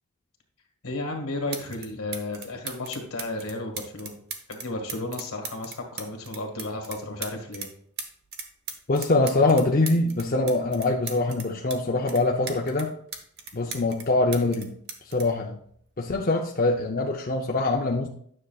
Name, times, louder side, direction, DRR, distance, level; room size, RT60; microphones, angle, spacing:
voice 1, 0.8-4.2 4.5-7.7, left 2 dB, 75° left, 2 dB, 1.8 m, -33 dB
sound 1, 1.0-1.1 1.5-1.9 2.1-7.7 8.0-11.8 12.1-14.1 14.3-16.2 17.1-17.3, right 5 dB, 45° right, 0.9 m, -38 dB
voice 2, 8.9-12.9 13.5-14.7 15.1-15.6 16.0-18.1, left 2 dB, 40° left, 0 dB, 0.6 m, -23 dB
9.8 x 6.4 x 2.3 m, 0.62 s
head